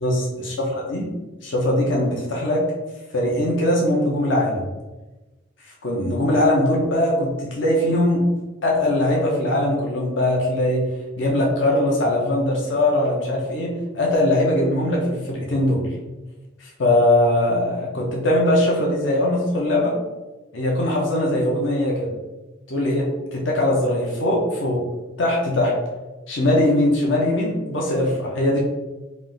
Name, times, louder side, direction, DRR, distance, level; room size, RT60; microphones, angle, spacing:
voice 1, 0.0-1.1 1.4-2.6 3.1-4.6 5.8-8.2 8.6-10.8 11.2-13.7 13.9-15.8 16.6-20.0 20.5-22.1 22.7-24.8 25.2-25.7 26.3-28.6, left 1 dB, 65° left, -2 dB, 0.8 m, -21 dB
3.4 x 2.5 x 3.9 m, 1.1 s
head